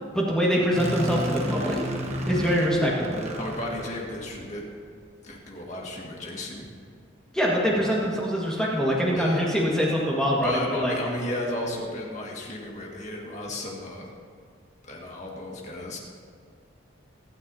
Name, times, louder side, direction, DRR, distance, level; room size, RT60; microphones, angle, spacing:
voice 1, 0.1-1.8 2.3-3.2 7.3-10.9, equal, 5° left, -5 dB, 1.6 m, -24 dB
sound 1, 0.7-4.7, equal, 35° right, 1.2 m, -32 dB
voice 2, 3.4-4.7 5.2-6.7 9.1-9.4 10.4-14.1 14.9-16.0, left 1 dB, 35° left, -1 dB, 1.8 m, -34 dB
23.5 x 9.8 x 2.8 m, 2.1 s
head